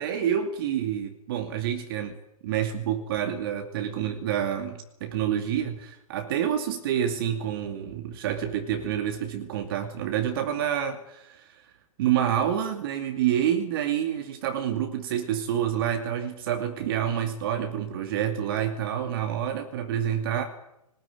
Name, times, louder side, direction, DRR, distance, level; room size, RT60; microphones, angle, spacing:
voice 1, 0.0-2.2 2.4-11.6 12.0-20.5, right 9 dB, 35° right, 6 dB, 2.4 m, -28 dB
23.0 x 19.5 x 9.4 m, 0.84 s
figure-of-eight pair, 125°, 19 cm